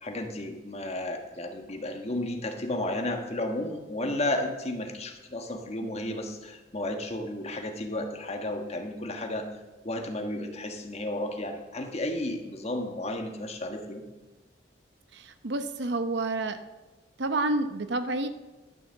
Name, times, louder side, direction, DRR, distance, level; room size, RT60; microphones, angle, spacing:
voice 1, 0.0-9.5 9.8-14.0, left 1 dB, 35° left, 4 dB, 1.4 m, -33 dB
voice 2, 15.1-16.6 17.2-18.3, right 2 dB, 65° right, 10 dB, 0.8 m, -29 dB
12.0 x 7.0 x 7.2 m, 1.1 s
head